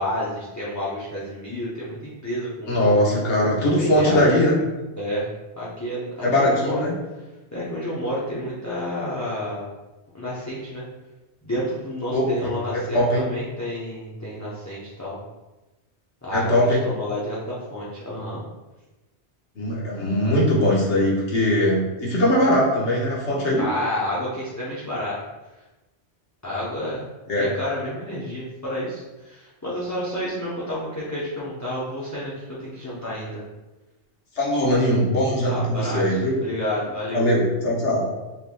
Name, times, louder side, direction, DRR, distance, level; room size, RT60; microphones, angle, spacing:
voice 1, 0.0-2.8 3.6-4.3 5.0-5.3 5.6-6.8 7.5-9.7 10.1-10.8 11.4-15.2 16.2-16.5 16.8-18.4 23.6-25.2 26.4-27.0 27.4-32.3 32.6-33.4 35.4-37.3, left 1 dB, 20° left, -8 dB, 0.7 m, -30 dB
voice 2, 2.7-4.6 6.2-6.9 12.1-13.2 16.3-16.8 19.5-23.7 27.3-27.5 34.3-36.4 37.1-38.1, left 1 dB, 90° left, -4 dB, 1.4 m, -21 dB
5.6 x 3.3 x 2.2 m, 1.1 s
omnidirectional pair, 1.1 m